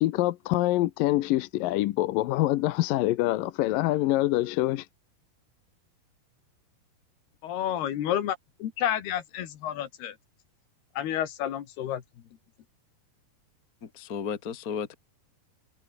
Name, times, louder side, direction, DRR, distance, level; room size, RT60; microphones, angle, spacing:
voice 1, 0.0-4.9, left 16 dB, 75° left, 2.3 m, -25 dB
voice 2, 7.4-10.2 11.0-12.0, left 11 dB, 90° left, 4.1 m, -30 dB
voice 3, 13.8-14.9, left 7 dB, 35° left, 1.6 m, -34 dB
omnidirectional pair, 4.4 m